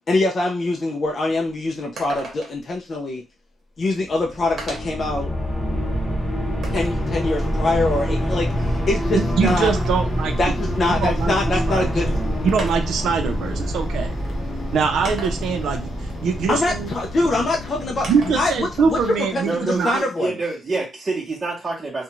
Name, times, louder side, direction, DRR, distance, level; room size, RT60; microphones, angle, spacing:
voice 1, 0.1-3.2 3.8-5.3 6.6-8.5 8.9-9.7 10.4-12.1 16.5-20.4, left 2 dB, 35° left, 0 dB, 0.4 m, -23 dB
sound 1, 1.0-1.1 1.5-1.6 2.0-2.7 3.8-3.9 4.6-5.1 5.6-7.0 9.3-10.2 11.7-11.8 12.6-13.0 14.0-14.1 15.1-15.7 18.0-18.5 18.9-20.0, right 3 dB, 50° right, 0.9 m, -36 dB
sound 2, 4.1-19.0, equal, 15° left, 0.9 m, -26 dB
sound 3, 6.9-19.7, left 2 dB, 70° left, 0.7 m, -38 dB
voice 2, 9.1-10.3 10.9-11.4 11.7-11.9 12.4-14.1 14.7-15.9 16.2-16.9 18.1-20.0, right 5 dB, 80° right, 5 dB, 0.5 m, -23 dB
voice 3, 19.4-22.0, right 3 dB, 25° right, -7 dB, 0.8 m, -27 dB
2.4 x 2.1 x 2.9 m, 0.26 s
wide cardioid pair, 155°, 0 cm